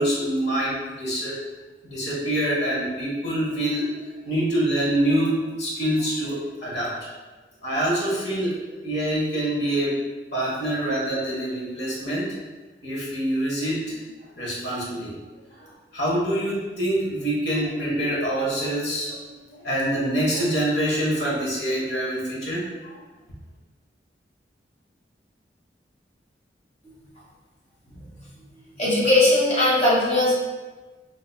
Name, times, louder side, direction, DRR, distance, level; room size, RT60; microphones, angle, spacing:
voice 1, 0.0-1.3 1.8-6.9 7.6-8.5 8.8-9.9 10.3-12.3 12.8-14.0 14.4-15.1 15.6-22.9, right 1 dB, 65° left, -6 dB, 1.2 m, -25 dB
voice 2, 28.8-30.3, left 2 dB, 40° left, -7 dB, 1.2 m, -19 dB
3.8 x 2.9 x 2.2 m, 1.3 s
head